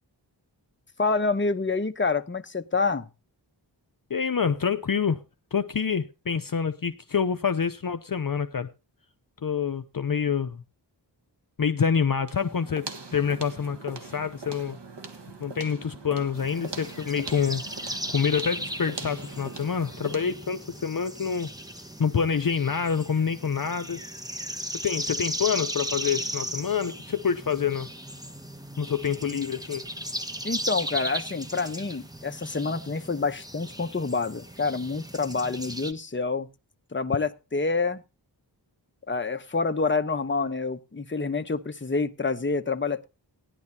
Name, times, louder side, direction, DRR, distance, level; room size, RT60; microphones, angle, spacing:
voice 1, 1.0-3.1 30.4-36.5 36.9-38.0 39.1-43.1, left 4 dB, 25° left, 0.9 m, -27 dB
voice 2, 4.1-5.2 5.5-8.7 9.4-10.6 11.6-14.8 15.4-17.6 18.1-21.5 22.0-24.0 24.8-27.9 28.8-29.9, left 6 dB, 50° left, 0.7 m, -27 dB
sound 1, 12.2-20.5, right 3 dB, 70° right, 1.6 m, -41 dB
sound 2, 16.3-35.9, equal, 10° right, 1.3 m, -36 dB
16.5 x 11.0 x 2.8 m
wide cardioid pair, 60°, 43 cm